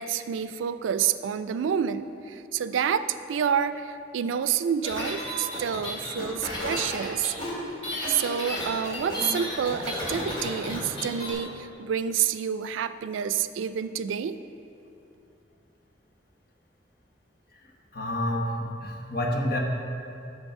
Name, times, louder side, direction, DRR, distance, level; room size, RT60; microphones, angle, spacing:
voice 1, 0.0-7.3 8.1-14.4, right 8 dB, 90° right, 12 dB, 0.3 m, -28 dB
sound 1, 4.8-11.3, left 1 dB, 30° left, 1.8 m, -32 dB
voice 2, 17.9-19.6, left 1 dB, 50° left, 0 dB, 1.0 m, -28 dB
7.9 x 6.2 x 4.7 m, 2.7 s
head